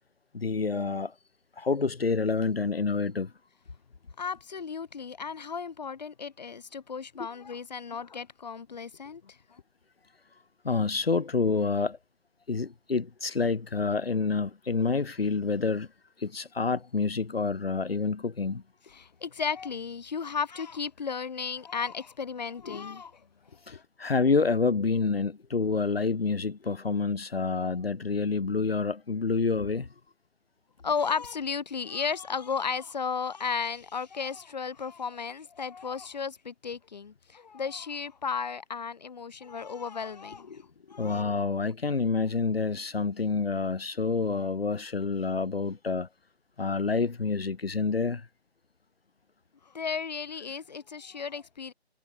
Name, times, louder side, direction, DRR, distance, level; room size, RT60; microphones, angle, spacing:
voice 1, 0.3-1.1 1.6-3.3 10.6-12.0 12.5-15.9 16.2-18.6 23.7-29.9 41.0-46.1 46.6-48.3, left 4 dB, 65° left, 6.0 m, -28 dB
voice 2, 4.2-9.6 18.9-23.2 23.5-23.8 30.8-41.4 49.7-51.7, left 6 dB, 40° left, 2.7 m, -34 dB
figure-of-eight pair, 170°, 32 cm